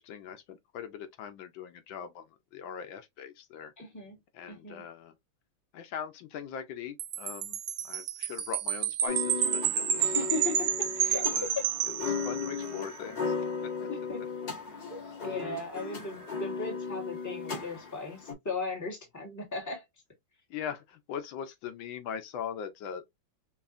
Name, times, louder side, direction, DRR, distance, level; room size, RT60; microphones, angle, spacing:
voice 1, 0.0-3.7 4.3-5.2 5.7-10.3 11.3-11.5 11.9-13.3 13.8-13.9 20.5-23.0, left 8 dB, 80° left, 1.4 m, -41 dB
voice 2, 3.8-4.2 4.5-4.8 9.9-11.7 13.9-14.2 14.9-19.8, left 3 dB, 10° left, 1.1 m, -37 dB
Wind chime, 7.0-12.7, right 9 dB, 85° right, 1.5 m, -30 dB
sound 1, 9.1-18.3, left 5 dB, 55° left, 2.6 m, -36 dB
5.5 x 2.4 x 2.5 m
omnidirectional pair, 2.1 m